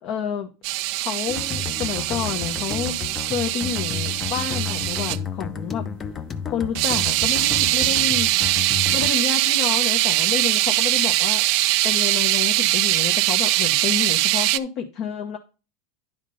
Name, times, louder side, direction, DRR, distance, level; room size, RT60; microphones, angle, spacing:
voice 1, 0.0-0.5 1.0-3.0 3.2-5.9 6.5-8.3 8.9-11.4 11.8-15.4, left 7 dB, 50° left, 5 dB, 1.0 m, -29 dB
sound 1, 0.6-5.2 6.7-14.6, right 18 dB, 60° right, 0.4 m, -22 dB
sound 2, 1.3-9.1, left 7 dB, 25° left, 0.7 m, -32 dB
10.5 x 3.6 x 5.4 m, 0.32 s
supercardioid pair, 125°, 0 cm